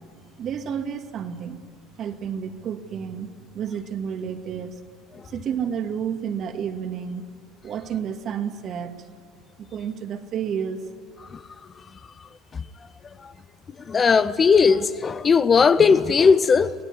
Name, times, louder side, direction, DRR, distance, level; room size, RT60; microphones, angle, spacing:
voice 1, 0.4-1.6 2.0-3.3 3.5-4.8 5.2-7.2 7.6-9.0 9.6-10.8, right 8 dB, 45° right, 2.2 m, -30 dB
voice 2, 13.9-16.7, left 5 dB, 25° left, 0.7 m, -17 dB
24.5 x 18.5 x 9.8 m
cardioid pair, 120°, 0 cm